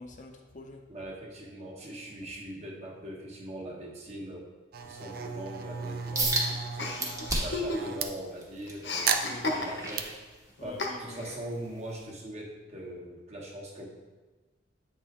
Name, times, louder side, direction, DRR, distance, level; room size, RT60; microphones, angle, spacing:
voice 1, 0.0-0.9 2.2-2.3 6.1-6.3 6.8-7.4 9.2-9.5 10.6-11.2, left 2 dB, 45° left, 3 dB, 0.6 m, -47 dB
voice 2, 0.9-4.5 4.8-6.9 7.4-10.1 10.6-13.9, right 1 dB, 35° right, -2 dB, 1.3 m, -41 dB
sound 1, 4.7-8.1 9.1-10.0, right 6 dB, 55° right, 0.5 m, -35 dB
sound 2, 6.2-6.5 7.0-7.7 8.2-10.8 11.2-11.5 12.0-12.1, right 2 dB, 20° right, 1.1 m, -32 dB
Chuckle chortle, 6.8-8.2 8.4-10.1 10.8-11.4, left 2 dB, 70° left, 1.0 m, -34 dB
8.6 x 4.2 x 3.6 m, 1.2 s
head